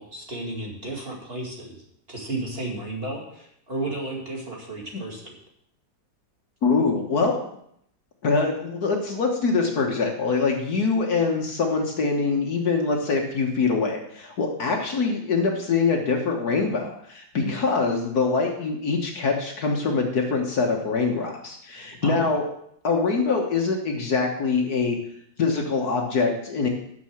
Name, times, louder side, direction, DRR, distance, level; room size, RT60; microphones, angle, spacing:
voice 1, 0.0-1.8 2.1-5.3 17.4-17.6 22.0-22.3, right 2 dB, 30° right, -1 dB, 2.4 m, -33 dB
voice 2, 6.6-7.4 8.2-22.4 22.8-25.0 25.4-26.7, left 4 dB, 55° left, 2 dB, 1.8 m, -24 dB
9.6 x 6.7 x 7.2 m, 0.73 s
omnidirectional pair, 2.1 m